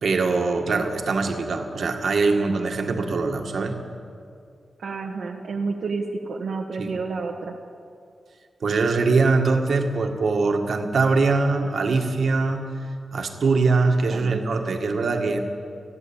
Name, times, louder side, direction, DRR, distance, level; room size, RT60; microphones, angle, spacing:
voice 1, 0.0-3.8 8.6-12.7 13.1-15.4, right 3 dB, 65° right, 4 dB, 1.9 m, -22 dB
voice 2, 4.8-7.6 14.1-14.7, right 4 dB, 85° right, 0 dB, 1.4 m, -30 dB
29.5 x 10.5 x 8.9 m, 2.4 s
wide cardioid pair, 165°, 0 cm